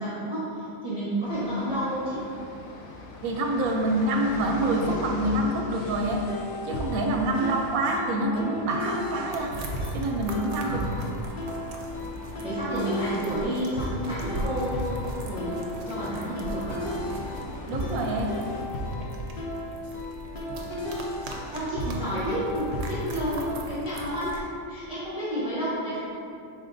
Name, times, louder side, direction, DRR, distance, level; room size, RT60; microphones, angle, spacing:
voice 1, 0.0-2.2 10.6-11.0 12.4-16.8 20.5-20.8 21.5-26.0, equal, 5° right, -11 dB, 0.6 m, -31 dB
sound 1, 1.2-18.6, left 2 dB, 80° left, 1.0 m, -41 dB
voice 2, 3.2-6.2 6.6-9.5 9.9-10.8 17.7-18.3, right 1 dB, 90° right, 1 dB, 1.1 m, -26 dB
sound 2, 5.8-23.6, left 1 dB, 55° left, 0.7 m, -35 dB
sound 3, 9.3-24.4, right 2 dB, 60° right, 0.7 m, -39 dB
5.3 x 3.9 x 2.5 m, 2.6 s
omnidirectional pair, 1.5 m